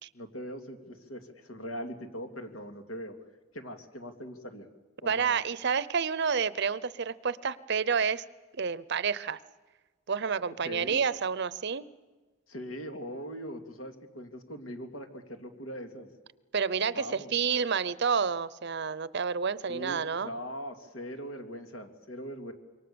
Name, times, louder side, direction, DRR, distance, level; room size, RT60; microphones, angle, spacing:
voice 1, 0.1-3.1 3.5-4.7 5.0-5.4 10.6-11.0 12.5-16.1 16.9-17.3 19.7-22.5, equal, 80° left, 5 dB, 2.7 m, -41 dB
voice 2, 5.1-8.2 8.6-9.4 10.1-11.9 16.5-20.3, right 6 dB, 55° right, 17 dB, 0.7 m, -29 dB
27.0 x 23.5 x 7.0 m, 1.3 s
head